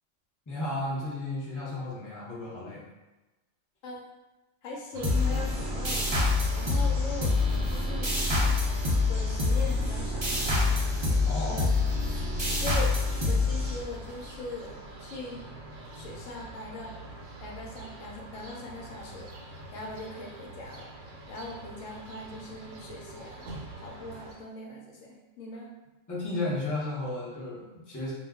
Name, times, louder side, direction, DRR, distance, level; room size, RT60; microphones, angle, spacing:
voice 1, 0.5-2.9 11.2-11.7 26.1-28.1, left 2 dB, 20° left, -7 dB, 0.6 m, -33 dB
voice 2, 4.6-6.0 6.5-8.1 9.1-10.5 11.3-11.9 12.5-13.0 13.3-15.4 15.9-16.9 17.4-19.3 19.7-20.9 21.3-23.5 23.8-25.7, left 2 dB, 80° left, -2 dB, 1.0 m, -41 dB
sound 1, 4.9-24.4, right 1 dB, 75° right, 1.0 m, -44 dB
sound 2, 5.0-14.3, left 3 dB, 40° right, 0.4 m, -26 dB
2.3 x 2.2 x 3.5 m, 1.1 s
omnidirectional pair, 1.3 m